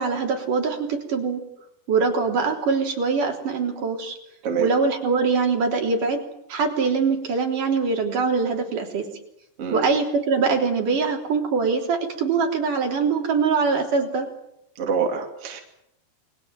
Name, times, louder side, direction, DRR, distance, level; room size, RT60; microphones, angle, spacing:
voice 1, 0.0-1.4 1.9-4.2 4.6-6.2 6.5-9.1 9.7-14.3, right 4 dB, 55° right, 2 dB, 4.9 m, -23 dB
voice 2, 14.8-15.6, right 6 dB, 40° right, 2 dB, 3.3 m, -25 dB
29.0 x 22.0 x 7.7 m, 0.78 s
omnidirectional pair, 4.4 m